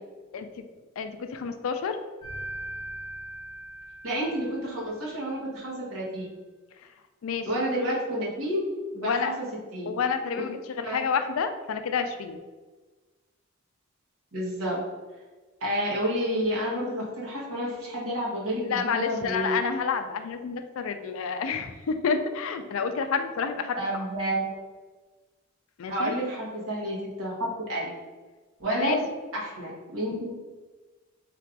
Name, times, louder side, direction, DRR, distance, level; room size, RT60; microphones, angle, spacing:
voice 1, 0.3-0.7 1.0-2.0 7.2-7.5 9.0-9.3 9.9-12.4 18.6-24.1 25.8-26.1 28.7-29.0, left 5 dB, 65° left, 8 dB, 0.4 m, -29 dB
sound 1, 2.2-5.1, right 1 dB, 30° right, 1.2 m, -40 dB
voice 2, 4.0-6.3 7.4-8.6 8.9-9.4 9.7-9.9 10.3-10.5 10.8-11.0 14.3-14.8 15.6-19.6 23.7-24.6 25.9-27.9 28.6-29.0 29.3-30.3, equal, 70° right, -5 dB, 1.3 m, -30 dB
3.4 x 2.5 x 4.5 m, 1.3 s
head